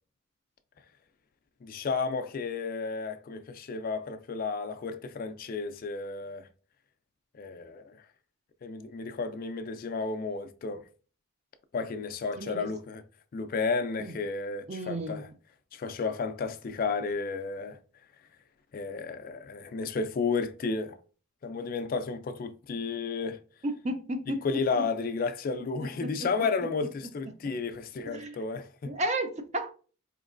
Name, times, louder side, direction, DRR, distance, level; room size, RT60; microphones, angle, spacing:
voice 1, 1.6-6.5 7.3-8.0 8.6-10.8 11.7-13.0 13.3-15.3 15.7-17.8 18.7-21.0 21.4-23.4 24.4-28.9, left 4 dB, 40° left, 0.3 m, -32 dB
voice 2, 12.4-12.7 14.0-14.1 14.7-15.2 23.6-24.4 24.7-24.8 25.8-26.3 28.1-28.4 28.8-29.7, right 1 dB, 30° right, 0.5 m, -33 dB
4.4 x 3.0 x 2.5 m
head